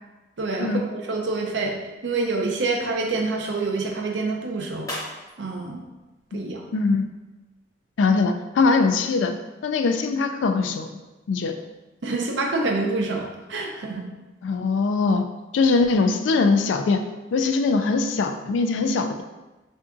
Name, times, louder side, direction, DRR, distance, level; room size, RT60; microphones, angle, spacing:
voice 1, 0.4-1.8 2.0-4.9 5.4-5.8 6.3-6.6 12.0-14.1, right 3 dB, 75° right, 1 dB, 0.5 m, -27 dB
sound 1, 4.8-7.2, left 1 dB, 20° left, 0.7 m, -43 dB
voice 2, 6.7-7.1 8.0-9.3 9.6-10.9 11.3-11.6 14.4-15.3 15.5-17.0 17.3-19.2, left 4 dB, 80° left, 7 dB, 0.3 m, -21 dB
4.5 x 2.6 x 2.4 m, 1.1 s
head